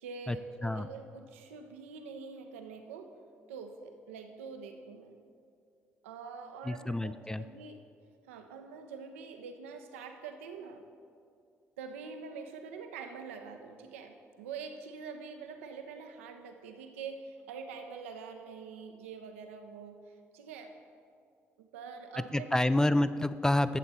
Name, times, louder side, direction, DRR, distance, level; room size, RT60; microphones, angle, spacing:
voice 1, 0.0-3.1 3.5-5.2 6.0-7.8 8.2-10.8 11.8-20.0 20.3-20.7 21.6-22.8, right 5 dB, 75° right, 6 dB, 0.7 m, -45 dB
voice 2, 6.6-7.4 22.3-23.8, left 1 dB, 10° left, 13 dB, 0.3 m, -28 dB
11.5 x 7.7 x 4.1 m, 2.3 s
figure-of-eight pair, 45°, 7 cm